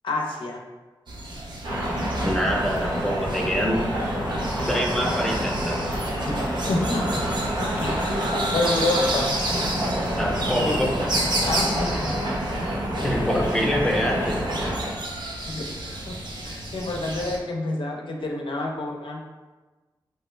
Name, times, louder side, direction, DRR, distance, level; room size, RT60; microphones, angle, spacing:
voice 1, 0.0-0.6 6.2-7.1 7.8-8.3 8.5-9.3 11.4-12.2 15.5-16.2 16.4-19.2, left 2 dB, 70° left, 0 dB, 0.5 m, -28 dB
sound 1, 1.1-17.4, right 1 dB, 55° right, 0.6 m, -32 dB
sound 2, 1.6-14.9, equal, 75° right, 0.9 m, -27 dB
voice 2, 2.2-3.8 4.7-5.8 10.2-10.9 13.0-14.4, equal, 5° left, -1 dB, 0.6 m, -25 dB
2.8 x 2.3 x 3.1 m, 1.3 s
cardioid pair, 50°, 9 cm